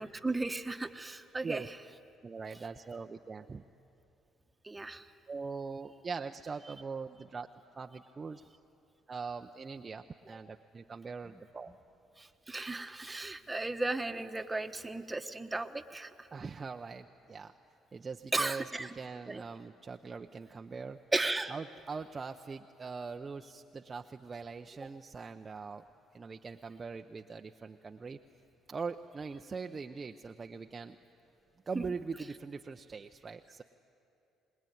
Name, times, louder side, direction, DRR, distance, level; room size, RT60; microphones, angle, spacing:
voice 1, 0.0-1.6 4.6-5.1 12.2-16.3 18.3-18.9 19.3-19.4 21.1-21.5 31.7-31.8, right 2 dB, 15° right, 7 dB, 1.3 m, -35 dB
voice 2, 2.2-3.6 5.3-7.5 7.8-8.4 9.1-11.7 16.3-17.5 17.9-21.0 21.5-25.8 26.1-28.2 28.7-31.0 31.7-33.6, right 4 dB, 35° right, 5 dB, 0.7 m, -42 dB
23.5 x 20.5 x 9.4 m, 2.7 s
supercardioid pair, 65°, 0 cm